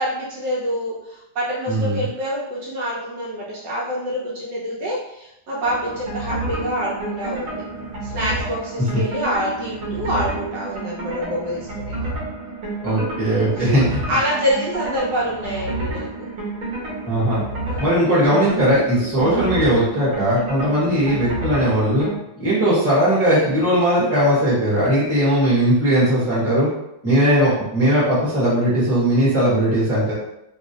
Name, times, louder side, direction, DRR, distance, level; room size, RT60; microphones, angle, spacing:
voice 1, 0.0-7.6 8.0-12.1 13.5-13.8 14.1-16.3 17.7-17.8 19.0-19.1, equal, 70° right, -5 dB, 1.3 m, -26 dB
voice 2, 1.7-2.1 8.9-9.0 12.8-14.0 17.0-17.4 17.8-22.1 22.4-26.7 27.0-30.1, equal, 10° right, -8 dB, 1.1 m, -18 dB
sound 1, 5.6-22.2, right 2 dB, 50° right, 1.2 m, -30 dB
3.0 x 2.8 x 2.8 m, 0.83 s
omnidirectional pair, 2.1 m